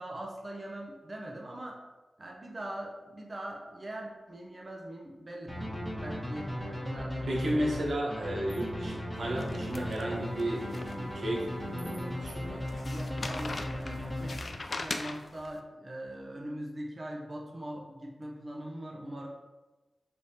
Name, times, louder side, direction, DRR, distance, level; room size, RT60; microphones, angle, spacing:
voice 1, 0.0-1.8 2.2-8.0 12.8-19.3, right 1 dB, 40° right, -1 dB, 0.7 m, -42 dB
sound 1, 5.5-14.8, left 1 dB, 10° left, 1.3 m, -37 dB
voice 2, 7.3-10.7 11.0-12.6, right 1 dB, 80° right, -2 dB, 0.8 m, -33 dB
sound 2, 9.3-11.4 11.8-11.9 12.7-15.5, left 3 dB, 60° left, 0.3 m, -40 dB
4.7 x 3.4 x 2.8 m, 1.2 s
cardioid pair, 45°, 0 cm